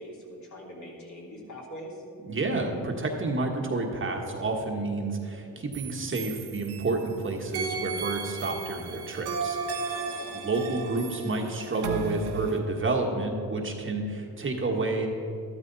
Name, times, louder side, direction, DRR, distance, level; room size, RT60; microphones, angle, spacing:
voice 1, 0.0-1.9 9.9-10.5, equal, 50° left, -3 dB, 3.4 m, -43 dB
voice 2, 2.2-9.6 10.3-15.1, right 3 dB, 30° right, 1 dB, 1.4 m, -29 dB
sound 1, 5.7-7.1 7.5-12.6, right 4 dB, 85° right, 1.3 m, -35 dB
13.0 x 12.5 x 4.1 m, 2.6 s
cardioid pair, 105°, 37 cm